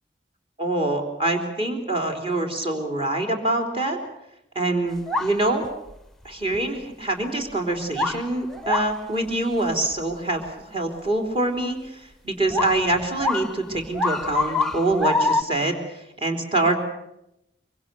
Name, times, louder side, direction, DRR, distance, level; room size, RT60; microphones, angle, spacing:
voice 1, 0.6-4.0 4.6-5.6 6.2-10.4 10.7-16.8, right 2 dB, 30° right, 2 dB, 3.6 m, -25 dB
sound 1, 5.1-5.9 6.5-6.6 7.8-9.0 9.9-10.0 10.5-10.6 12.5-15.4, left 3 dB, ahead, 0.8 m, -25 dB
24.5 x 24.5 x 7.0 m, 0.83 s
head